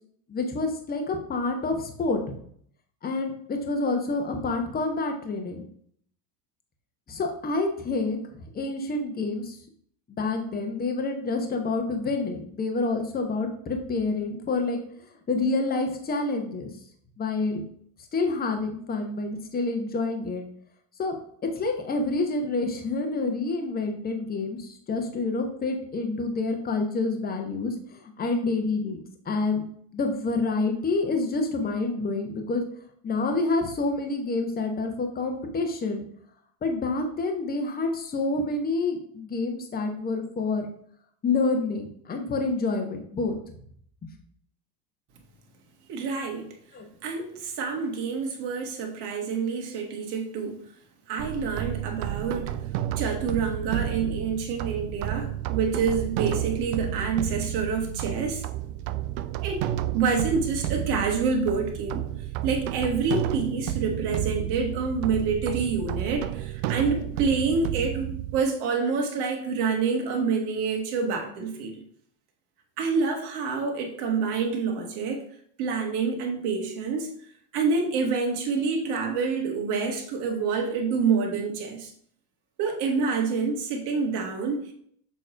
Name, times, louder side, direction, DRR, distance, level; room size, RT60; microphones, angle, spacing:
voice 1, 0.3-2.2 3.0-5.6 7.1-8.2 8.5-9.6 10.1-14.8 15.3-16.7 17.2-17.6 18.1-20.4 21.0-21.1 21.6-29.0 29.3-29.6 29.9-32.6 33.0-36.0 36.6-40.7 41.2-43.3 46.7-46.8, left 3 dB, 20° left, 4 dB, 1.0 m, -28 dB
voice 2, 45.9-46.5 47.0-50.6 51.1-52.5 53.0-58.4 59.4-62.1 62.4-71.8 72.8-75.2 75.6-77.1 77.5-81.9 82.6-84.7, right 5 dB, 55° right, 2 dB, 1.7 m, -27 dB
sound 1, 51.2-68.4, right 12 dB, 70° right, 0.6 m, -31 dB
6.8 x 3.1 x 5.0 m, 0.63 s
supercardioid pair, 125°, 48 cm